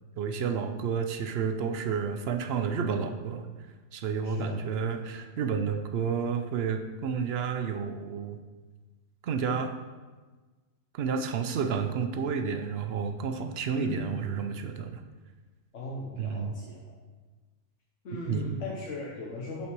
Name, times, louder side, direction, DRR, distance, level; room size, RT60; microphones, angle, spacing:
voice 1, 0.2-3.5 3.9-8.4 9.2-9.7 10.9-15.0 16.2-16.5 18.1-18.5, right 6 dB, 65° right, 7 dB, 0.7 m, -30 dB
voice 2, 4.2-5.0 13.7-14.2 15.7-16.9 18.0-19.7, left 2 dB, 80° left, -1 dB, 1.2 m, -38 dB
5.6 x 4.3 x 6.0 m, 1.3 s
omnidirectional pair, 1.2 m